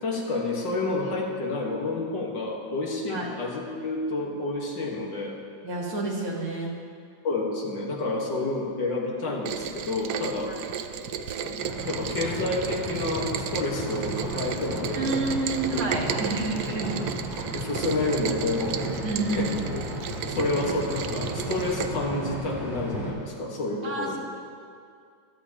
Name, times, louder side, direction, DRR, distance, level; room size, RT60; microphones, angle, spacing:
voice 1, 0.0-5.4 7.2-10.5 11.0-15.2 15.7-16.3 17.5-18.8 19.4-19.9 20.3-24.2, left 2 dB, 70° left, -1 dB, 2.2 m, -29 dB
voice 2, 5.6-6.7 10.5-10.6 14.9-16.9 19.0-19.5 23.8-24.2, right 2 dB, 45° right, -3 dB, 2.1 m, -29 dB
Rain, 9.4-21.9, right 9 dB, 80° right, 0.8 m, -34 dB
sound 1, 11.6-23.1, right 1 dB, ahead, 2.3 m, -34 dB
16.0 x 12.0 x 2.9 m, 2.3 s
omnidirectional pair, 2.1 m